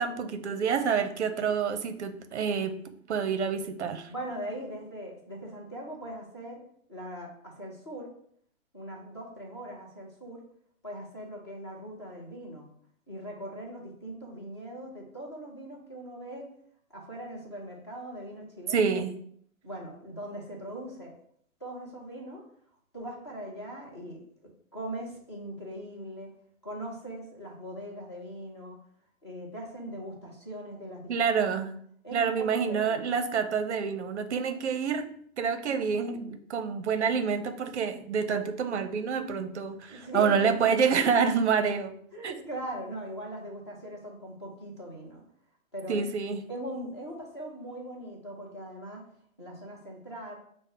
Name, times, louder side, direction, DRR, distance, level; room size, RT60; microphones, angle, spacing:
voice 1, 0.0-2.8 3.1-4.1 18.7-19.1 31.1-31.8 32.1-35.1 35.4-41.9 42.2-42.4 45.9-46.4, right 6 dB, 55° right, 9 dB, 0.5 m, -27 dB
voice 2, 4.1-6.6 6.9-8.1 8.7-10.4 10.8-12.7 13.1-16.5 16.9-18.9 19.6-21.1 21.6-22.4 22.9-24.2 24.7-26.3 26.6-28.8 29.2-31.1 32.0-33.1 39.9-40.4 42.1-45.2 45.7-46.1 46.5-49.0 49.4-50.3, equal, 20° left, -3 dB, 0.5 m, -40 dB
5.5 x 2.0 x 3.6 m, 0.64 s
hypercardioid pair, 170°, 42 cm